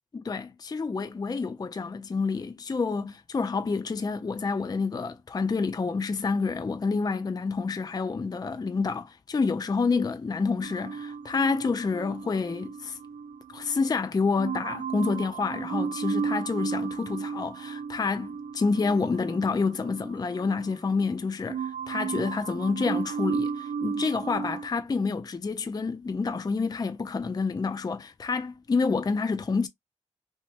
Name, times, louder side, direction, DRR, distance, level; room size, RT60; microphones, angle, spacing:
voice 1, 0.1-13.0 13.5-29.7, left 4 dB, 30° left, 0.4 m, -28 dB
sound 1, 10.6-13.9 14.4-21.2 21.5-24.7, right 6 dB, 70° right, 0.4 m, -34 dB
2.9 x 2.2 x 3.1 m
supercardioid pair, 40°, 13 cm